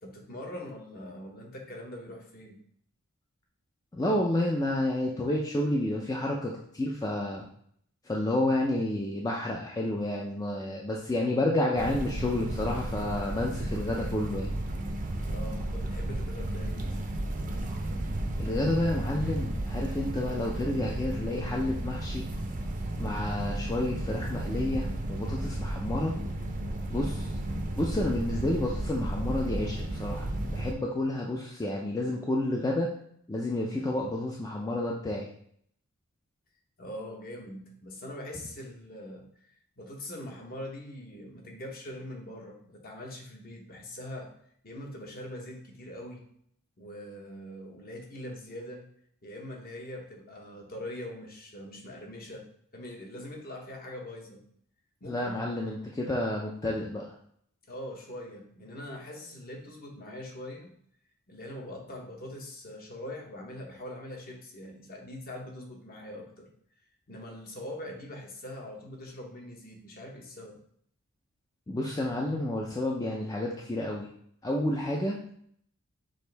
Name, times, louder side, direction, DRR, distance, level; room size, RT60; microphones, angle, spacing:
voice 1, 0.0-2.6 15.2-17.0 36.8-39.3 39.8-44.3 44.6-46.2 46.8-48.8 49.2-52.5 52.7-54.4 55.0-55.4 57.7-60.8 61.3-66.5 67.1-70.6, left 1 dB, 40° left, 1 dB, 0.9 m, -42 dB
voice 2, 3.9-7.4 8.0-14.5 18.4-22.3 23.0-26.2 26.9-27.3 27.8-32.9 33.3-35.3 55.1-57.1 71.7-74.1 74.4-75.3, left 1 dB, 15° left, -1 dB, 0.4 m, -30 dB
sound 1, 11.8-30.7, right 1 dB, 35° right, 0.5 m, -33 dB
6.3 x 2.5 x 3.3 m, 0.67 s
head